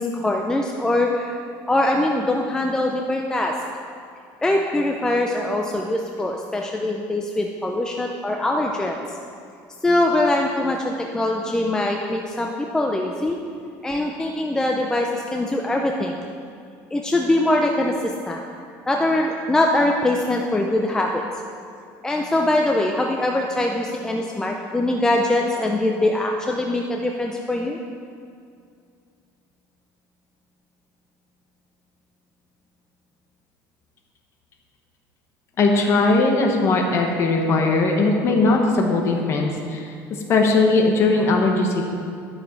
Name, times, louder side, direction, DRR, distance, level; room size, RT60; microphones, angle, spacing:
voice 1, 0.0-1.4 1.7-3.5 4.4-9.0 9.8-13.4 13.8-16.2 16.9-18.4 18.9-21.2 22.0-27.8, left 1 dB, 10° left, 1 dB, 0.5 m, -22 dB
voice 2, 35.6-39.9 40.3-41.8, left 3 dB, 40° left, 1 dB, 1.3 m, -19 dB
11.5 x 6.4 x 4.6 m, 2.4 s
cardioid pair, 155°, 7 cm